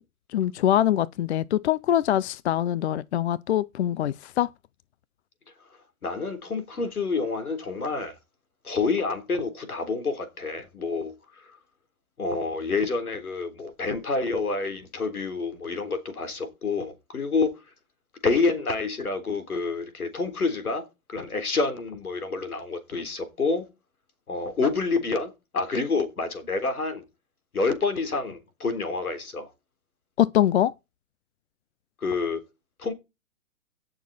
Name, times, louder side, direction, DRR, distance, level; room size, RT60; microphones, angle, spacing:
voice 1, 0.3-4.5 30.2-30.7, left 11 dB, 50° left, 0.6 m, -23 dB
voice 2, 6.0-8.1 8.6-11.1 12.2-17.5 18.2-23.7 24.3-27.0 27.5-29.5 32.0-32.4 32.8-32.9, left 4 dB, 85° left, 3.7 m, -28 dB
17.0 x 6.6 x 4.1 m
hypercardioid pair, 135°, 43 cm